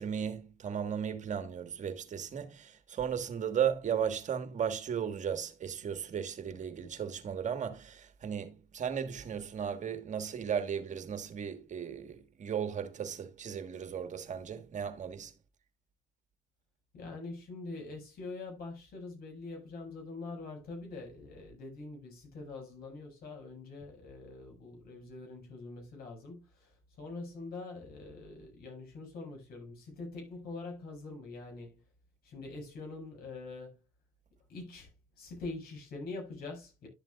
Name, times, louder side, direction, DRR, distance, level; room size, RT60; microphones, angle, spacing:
voice 1, 0.0-15.3, right 8 dB, 45° right, 1.6 m, -35 dB
voice 2, 16.9-31.8 32.2-33.8 34.5-34.9 35.2-36.9, left 3 dB, 65° left, 6.0 m, -44 dB
12.0 x 7.4 x 2.4 m
supercardioid pair, 70°, 17 cm